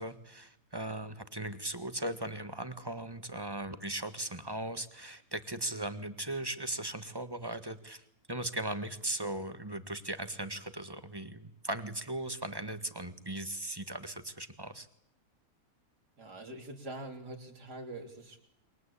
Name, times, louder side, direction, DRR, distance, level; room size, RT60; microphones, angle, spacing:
voice 1, 0.0-8.0 8.3-14.9, right 1 dB, 15° right, 11 dB, 1.5 m, -38 dB
voice 2, 16.2-18.4, right 1 dB, 85° right, 4 dB, 4.0 m, -44 dB
29.0 x 23.5 x 8.5 m, 0.77 s
omnidirectional pair, 1.7 m